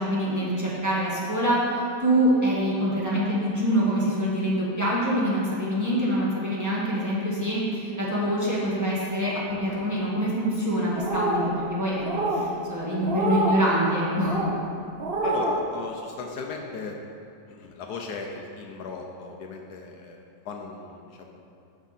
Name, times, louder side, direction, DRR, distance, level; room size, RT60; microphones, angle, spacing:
voice 1, 0.0-1.6 2.0-12.0 12.3-14.4, equal, 10° right, -8 dB, 1.6 m, -25 dB
sound 1, 10.9-11.5 12.0-12.4 13.0-13.6 14.2-14.5 15.0-15.5, right 2 dB, 45° right, 0.8 m, -26 dB
voice 2, 15.2-17.0 17.5-21.4, left 4 dB, 70° left, 1 dB, 1.2 m, -37 dB
9.6 x 6.1 x 4.2 m, 2.5 s
omnidirectional pair, 1.8 m